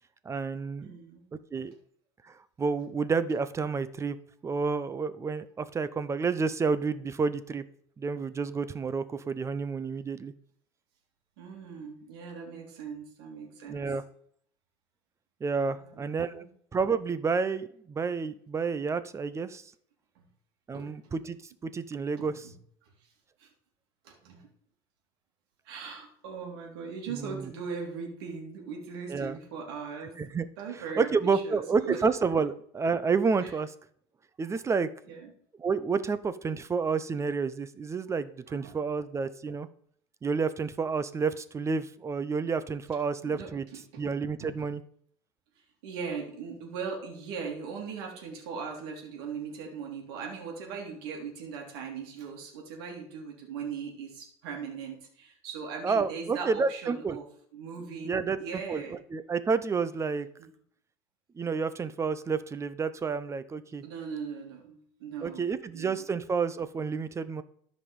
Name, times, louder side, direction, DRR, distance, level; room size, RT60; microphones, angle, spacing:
voice 1, 0.2-1.0 1.5-1.7 2.2-4.2 4.4-7.6 8.0-10.3 13.7-14.0 15.4-16.4 16.7-19.6 20.7-22.5 27.1-27.5 29.1-29.4 30.2-30.5 31.0-33.7 34.4-34.9 35.6-39.7 40.2-43.7 44.0-44.8 55.8-57.2 58.0-60.3 61.3-63.8 65.2-67.4, right 5 dB, 20° right, 14 dB, 0.8 m, -30 dB
voice 2, 0.8-1.2 11.4-13.8 15.7-16.4 20.1-20.2 20.7-20.9 22.2-22.5 23.4-23.5 24.0-24.5 25.6-30.2 30.6-32.0 33.4-33.5 35.1-35.3 38.5-38.8 43.2-44.0 44.4-44.5 45.8-57.2 57.5-59.0 60.4-60.5 63.8-66.1, right 6 dB, 85° right, 1 dB, 3.0 m, -39 dB
13.0 x 5.4 x 5.4 m, 0.62 s
supercardioid pair, 115°, 13 cm